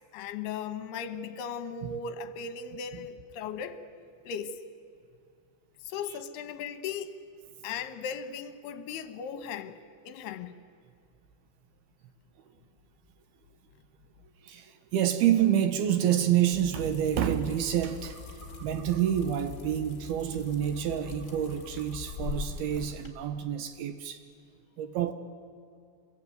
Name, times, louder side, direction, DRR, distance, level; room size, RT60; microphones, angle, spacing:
voice 1, 0.1-3.8 4.3-4.6 5.8-7.2 7.6-9.8 10.0-10.5, left 6 dB, 70° left, 2.8 m, -37 dB
voice 2, 14.4-24.2 24.8-25.1, right 10 dB, 70° right, 2.5 m, -28 dB
sound 1, 16.5-23.1, left 6 dB, 40° left, 1.4 m, -42 dB
sound 2, 17.5-17.6 17.9-19.1 19.6-19.7 20.2-22.3 22.7-22.8 23.1-23.2, right 5 dB, 5° left, 3.6 m, -54 dB
27.0 x 22.0 x 9.3 m
omnidirectional pair, 5.4 m